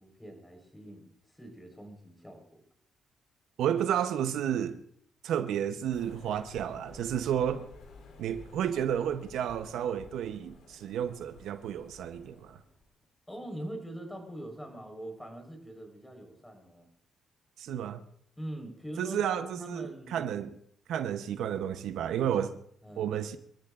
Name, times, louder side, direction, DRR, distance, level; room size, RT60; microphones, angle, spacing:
voice 1, 0.0-2.6 13.3-16.9 18.4-19.2 19.6-20.3 22.8-23.2, right 1 dB, 5° left, 4.3 m, -43 dB
voice 2, 3.6-4.8 5.2-7.7 8.2-12.6 17.6-18.0 19.0-20.5 20.9-22.6 23.0-23.4, right 9 dB, 80° right, 0.8 m, -31 dB
sound 1, 5.9-12.9, left 3 dB, 75° left, 3.4 m, -53 dB
27.5 x 13.5 x 2.5 m
cardioid pair, 90°, 0 cm